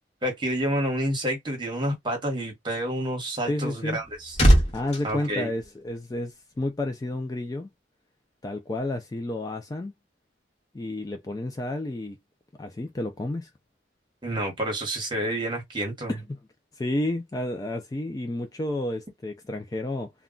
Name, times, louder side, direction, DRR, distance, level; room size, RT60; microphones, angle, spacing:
voice 1, 0.2-4.4 5.0-5.5 14.2-16.1, right 1 dB, 25° right, 1.1 m, -29 dB
voice 2, 3.4-4.0 4.7-7.7 8.4-9.9 10.7-12.2 12.6-13.5 16.1-16.4 16.8-20.1, left 1 dB, 20° left, 0.3 m, -31 dB
Front door slam, 3.7-6.3 6.6-6.9, equal, 35° left, 1.1 m, -23 dB
2.2 x 2.2 x 3.6 m
head